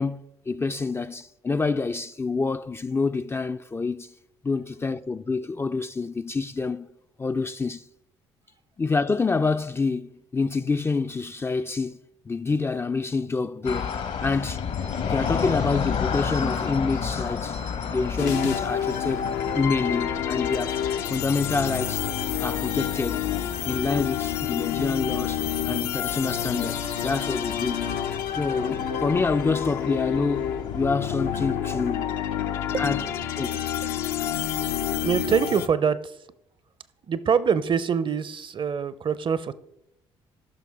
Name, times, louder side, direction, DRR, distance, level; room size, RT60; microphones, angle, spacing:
voice 1, 0.0-4.1 4.4-6.9 7.2-7.8 8.8-12.0 12.3-13.9 14.2-14.6 15.0-17.6 17.8-19.3 19.6-22.0 22.4-23.3 23.7-27.9 28.4-32.1 32.8-33.1 33.4-33.7, left 4 dB, 20° left, 0.3 m, -27 dB
sound 1, 13.6-31.5, left 6 dB, 60° left, 0.9 m, -33 dB
sound 2, 18.2-35.7, left 9 dB, 75° left, 0.6 m, -28 dB
voice 2, 35.0-36.1 37.1-39.5, right 7 dB, 40° right, 0.6 m, -24 dB
13.5 x 5.9 x 3.5 m
hypercardioid pair, 50°, 13 cm